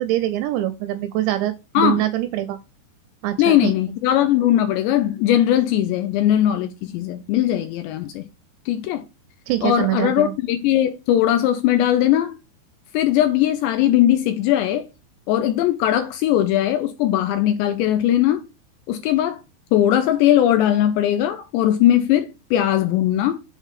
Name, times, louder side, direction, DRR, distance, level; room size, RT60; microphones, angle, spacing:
voice 1, 0.0-2.6 3.2-3.7 9.5-10.3, right 14 dB, 85° right, 2.5 m, -24 dB
voice 2, 3.4-8.3 8.7-9.0 9.6-12.4 12.9-14.9 15.3-18.5 18.9-19.4 19.7-23.4, left 12 dB, 85° left, 2.5 m, -19 dB
7.3 x 3.5 x 5.6 m
omnidirectional pair, 5.4 m